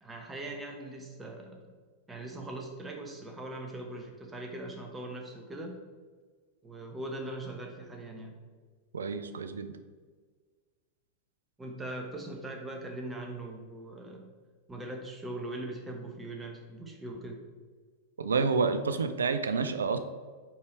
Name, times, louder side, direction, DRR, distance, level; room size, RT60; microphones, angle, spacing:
voice 1, 0.0-1.7 2.1-5.8 6.6-8.4 11.6-14.3 14.7-17.4, right 1 dB, 10° right, 2 dB, 0.9 m, -41 dB
voice 2, 8.9-9.7 18.2-20.0, right 4 dB, 70° right, 10 dB, 0.5 m, -29 dB
5.7 x 4.7 x 4.4 m, 1.5 s
figure-of-eight pair, 90°, 0 cm